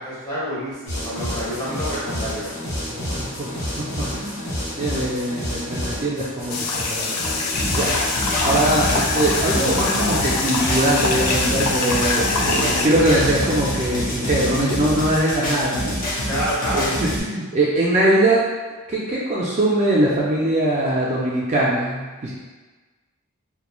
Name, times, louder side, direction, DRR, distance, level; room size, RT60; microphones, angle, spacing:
voice 1, 0.0-2.5 12.4-13.0 16.3-16.9, equal, 20° left, -9 dB, 1.0 m, -28 dB
sound 1, 0.9-14.5, equal, 60° left, 1.1 m, -30 dB
voice 2, 2.9-7.9 8.4-16.3 16.7-18.5 18.9-22.3, right 1 dB, 30° right, -5 dB, 0.3 m, -22 dB
sound 2, 6.5-12.9, left 3 dB, 80° left, 0.4 m, -24 dB
sound 3, 7.5-17.2, left 1 dB, 40° left, 0.6 m, -27 dB
3.0 x 2.2 x 2.3 m, 1.3 s
head